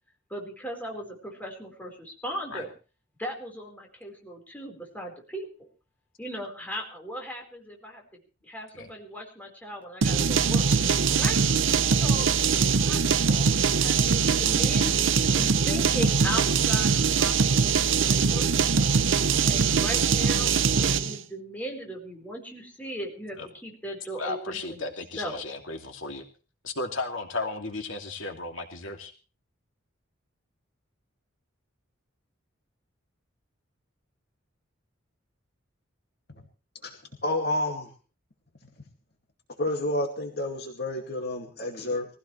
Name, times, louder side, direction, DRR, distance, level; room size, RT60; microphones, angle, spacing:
voice 1, 0.3-2.7 3.2-5.7 6.2-8.0 8.4-10.7 11.2-11.4 12.0-12.3 12.9-19.0 19.5-20.5 20.8-24.8 25.2-25.4, equal, 10° left, 0 dB, 4.6 m, -38 dB
sound 1, 10.0-21.2, right 5 dB, 70° right, 0.7 m, -22 dB
voice 2, 24.2-26.2 26.6-29.1, left 3 dB, 75° left, 3 dB, 2.7 m, -34 dB
voice 3, 37.2-37.9 39.6-42.1, left 1 dB, 55° left, 2 dB, 2.4 m, -29 dB
23.0 x 16.0 x 3.3 m, 0.35 s
head